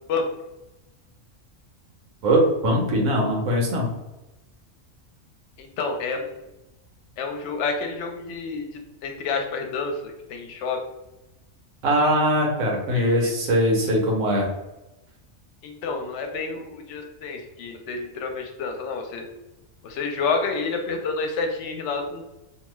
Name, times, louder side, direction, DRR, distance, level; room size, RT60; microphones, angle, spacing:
voice 1, 2.2-3.9 11.8-14.5, equal, 85° right, -1 dB, 1.1 m, -21 dB
voice 2, 5.6-6.5 7.2-8.7 9.0-10.8 12.9-13.4 15.6-19.2 19.8-22.2, left 4 dB, 70° left, 4 dB, 0.8 m, -29 dB
2.7 x 2.2 x 3.0 m, 0.97 s
omnidirectional pair, 1.4 m